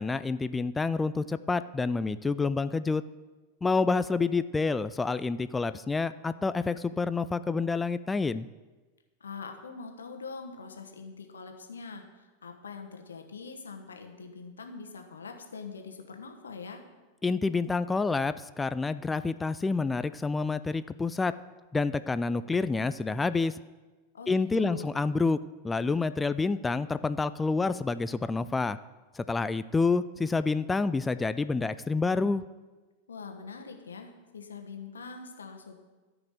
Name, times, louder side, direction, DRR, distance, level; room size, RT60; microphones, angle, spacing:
voice 1, 0.0-3.0 3.6-8.5 17.2-21.3 21.7-23.6 24.3-25.4 25.6-28.8 29.1-32.4, left 4 dB, 10° left, 14 dB, 0.3 m, -28 dB
voice 2, 9.2-16.8 24.1-24.9 33.1-35.8, left 4 dB, 70° left, 4 dB, 1.2 m, -43 dB
13.5 x 5.0 x 6.7 m, 1.2 s
figure-of-eight pair, 90°, 0 cm